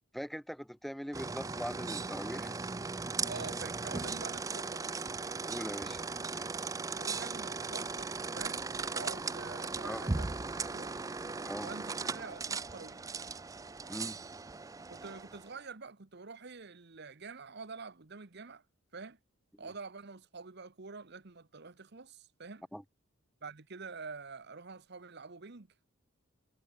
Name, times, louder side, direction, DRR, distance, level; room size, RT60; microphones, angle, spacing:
voice 1, 0.1-2.5 5.5-6.0 9.8-10.0 11.4-11.7 13.9-14.2 22.7-22.8, equal, ahead, 1.5 m, -41 dB
sound 1, 1.1-15.5, right 4 dB, 15° right, 0.4 m, -38 dB
voice 2, 3.2-4.9 7.0-8.6 8.9-10.3 10.6-11.0 11.6-13.2 14.9-18.6 18.9-19.2 19.6-22.6 23.4-25.7, right 4 dB, 50° right, 1.1 m, -47 dB
head